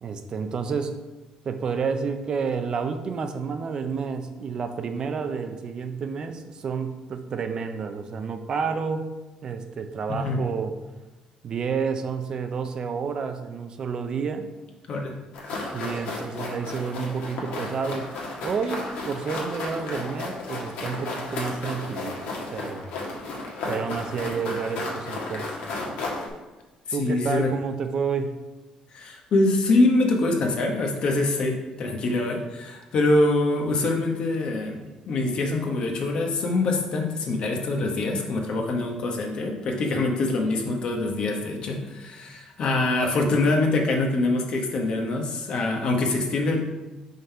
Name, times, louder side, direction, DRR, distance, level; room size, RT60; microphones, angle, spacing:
voice 1, 0.0-1.0 1.4-9.1 9.4-10.7 11.4-14.5 15.6-18.1 18.4-22.9 23.7-25.5 25.9-26.0 26.9-28.4, right 5 dB, 40° right, 7 dB, 0.5 m, -30 dB
sound 1, 15.3-26.3, left 3 dB, 85° left, 1.6 m, -33 dB
voice 2, 26.9-27.5 28.9-46.6, left 2 dB, 50° left, 2 dB, 1.1 m, -24 dB
5.3 x 3.9 x 5.4 m, 1.1 s
cardioid pair, 140°, 2 cm